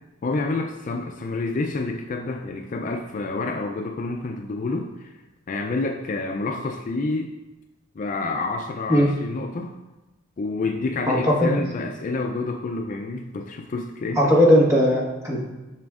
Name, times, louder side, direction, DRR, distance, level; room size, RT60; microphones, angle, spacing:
voice 1, 0.2-5.1 5.5-7.3 8.0-9.7 10.4-14.2, left 3 dB, 40° left, 3 dB, 0.4 m, -28 dB
voice 2, 11.1-11.6 14.2-15.4, equal, 15° right, -4 dB, 1.3 m, -18 dB
7.3 x 6.1 x 2.4 m, 1.1 s
head